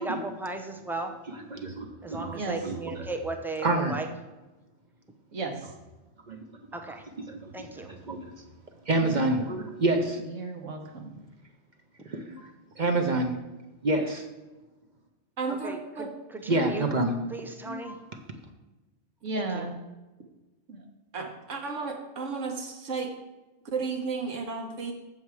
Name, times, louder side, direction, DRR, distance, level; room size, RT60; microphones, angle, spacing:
voice 1, 0.0-1.1 2.0-4.1 6.7-7.0 7.5-7.9 15.6-16.9 17.3-18.0 19.3-19.7, right 2 dB, 5° right, 5 dB, 0.3 m, -36 dB
voice 2, 1.3-2.4 2.6-3.1 3.6-4.0 6.3-6.4 6.7-7.0 7.3-8.4 8.8-10.2 12.0-13.4 13.8-14.3 16.5-17.2 17.6-18.2, right 2 dB, 45° right, 4 dB, 0.8 m, -28 dB
voice 3, 5.3-5.7 10.3-11.2 15.4-16.1 19.2-19.7 20.7-20.8 21.1-23.2 23.7-24.9, right 4 dB, 80° right, 4 dB, 1.5 m, -33 dB
7.2 x 7.1 x 4.7 m, 1.1 s
omnidirectional pair, 1.3 m